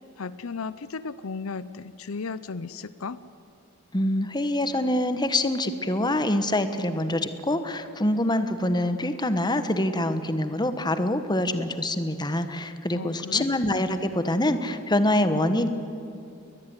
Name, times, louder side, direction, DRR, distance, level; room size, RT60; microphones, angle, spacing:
voice 1, 0.2-3.2 12.9-13.5, left 4 dB, 80° left, 16 dB, 0.7 m, -35 dB
voice 2, 3.9-15.7, left 1 dB, 20° left, 9 dB, 1.3 m, -25 dB
21.5 x 20.5 x 9.8 m, 2.8 s
head